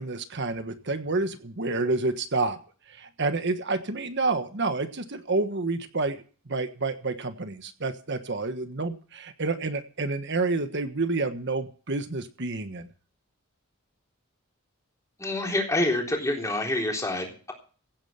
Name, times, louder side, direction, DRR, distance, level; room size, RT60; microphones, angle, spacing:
voice 1, 0.0-2.6 3.0-6.2 6.5-12.9, right 3 dB, 55° right, 8 dB, 1.4 m, -29 dB
voice 2, 15.2-17.5, left 1 dB, 15° left, 1 dB, 3.6 m, -27 dB
16.0 x 9.1 x 5.8 m, 0.40 s
head